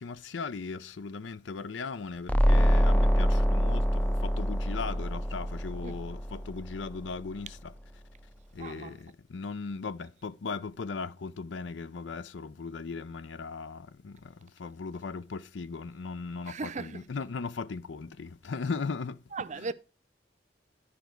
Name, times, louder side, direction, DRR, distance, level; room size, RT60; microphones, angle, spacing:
voice 1, 0.0-3.8 4.2-7.7 8.6-9.0 9.3-14.1 14.6-19.2, left 4 dB, 80° left, 0.6 m, -37 dB
sound 1, 2.3-7.0, equal, 10° left, 0.4 m, -25 dB
voice 2, 8.6-9.0 16.4-17.1 19.3-19.7, right 4 dB, 40° right, 0.6 m, -38 dB
10.5 x 5.2 x 4.4 m
head